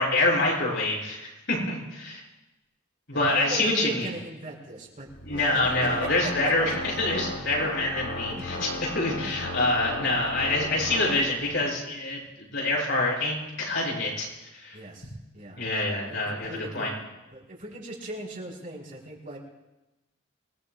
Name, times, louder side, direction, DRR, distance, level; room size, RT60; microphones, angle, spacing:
voice 1, 0.0-2.2 3.1-4.1 5.2-14.3 14.5-14.8 15.6-16.9, left 2 dB, 65° left, -3 dB, 7.5 m, -26 dB
voice 2, 3.1-5.7 6.0-6.8 7.6-7.8 8.3-8.6 9.2-9.3 14.7-17.0 17.3-19.4, right 2 dB, 45° right, -3 dB, 4.9 m, -39 dB
Organ, 5.1-11.7, left 2 dB, 85° left, 3.1 m, -36 dB
27.0 x 20.0 x 2.4 m, 1.0 s
head